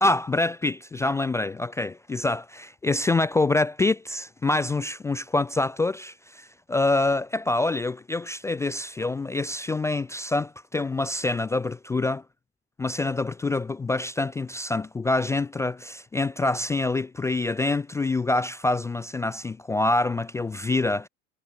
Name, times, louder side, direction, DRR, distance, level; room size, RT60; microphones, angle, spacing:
voice 1, 0.0-10.5 10.7-12.2 12.8-21.1, left 2 dB, 10° left, 0.3 m, -26 dB
hypercardioid pair, 80°, 36 cm